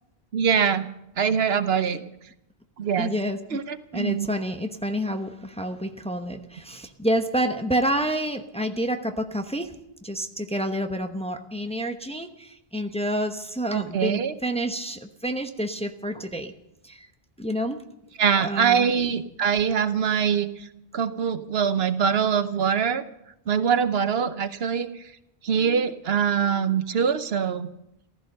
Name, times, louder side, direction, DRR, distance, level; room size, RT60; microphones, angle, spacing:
voice 1, 0.3-0.9 1.2-2.0 2.8-3.1 3.5-4.3 13.7-14.3 18.2-20.5 20.9-23.0 23.5-24.9 25.4-27.7, right 7 dB, 75° right, 11 dB, 1.1 m, -23 dB
voice 2, 3.0-3.4 3.9-9.7 10.0-16.5 16.8-17.0 17.4-17.8 18.4-18.9, equal, 5° left, 6 dB, 0.9 m, -28 dB
15.0 x 14.0 x 6.6 m, 0.83 s
omnidirectional pair, 1.0 m